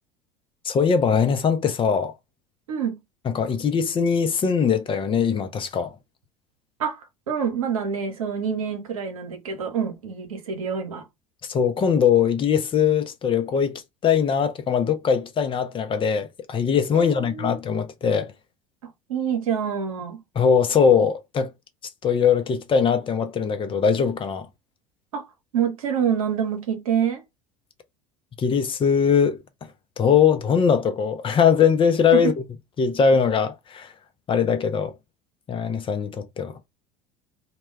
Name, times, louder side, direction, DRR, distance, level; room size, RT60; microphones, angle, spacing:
voice 1, 0.6-2.1 3.3-5.9 11.5-18.3 20.4-21.5 22.0-24.5 28.4-29.4 30.0-32.3 32.8-33.9 34.3-34.9 35.5-36.5, left 7 dB, 30° left, 0.6 m, -21 dB
voice 2, 2.7-3.0 6.8-11.0 16.9-17.5 18.8-20.2 25.1-25.2 25.5-27.2 32.1-32.3, right 7 dB, 85° right, 0.7 m, -26 dB
2.2 x 2.2 x 3.2 m
hypercardioid pair, 75°, 18 cm